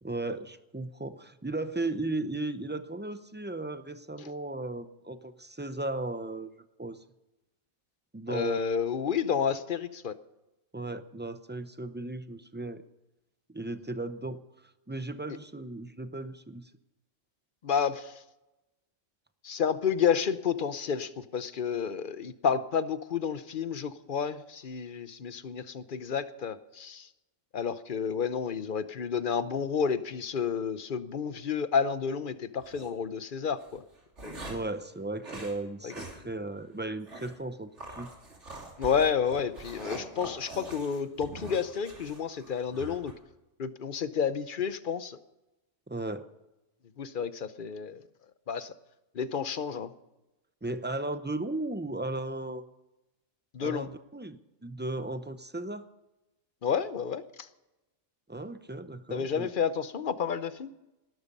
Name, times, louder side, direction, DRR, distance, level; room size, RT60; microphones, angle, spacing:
voice 1, 0.0-6.5 6.8-7.0 8.1-8.6 10.7-12.8 13.5-14.4 14.9-16.7 34.5-37.7 38.0-38.1 45.9-46.2 50.6-52.6 53.6-55.9 58.3-59.5, right 2 dB, 15° right, 11 dB, 0.4 m, -36 dB
voice 2, 8.3-10.1 17.6-18.1 19.4-27.1 27.5-33.8 34.2-34.5 35.8-35.9 38.8-43.1 43.6-45.2 47.0-48.0 48.5-48.7 49.1-49.9 53.5-53.9 56.6-57.5 59.1-60.7, left 7 dB, 45° left, 14 dB, 0.8 m, -30 dB
sound 1, 32.6-32.9 33.6-34.7 35.2-35.6 35.9-36.2 36.5-36.6 37.1-37.4 37.8-43.1, right 2 dB, 60° right, 3.4 m, -44 dB
18.5 x 12.5 x 5.4 m, 0.97 s
omnidirectional pair, 1.4 m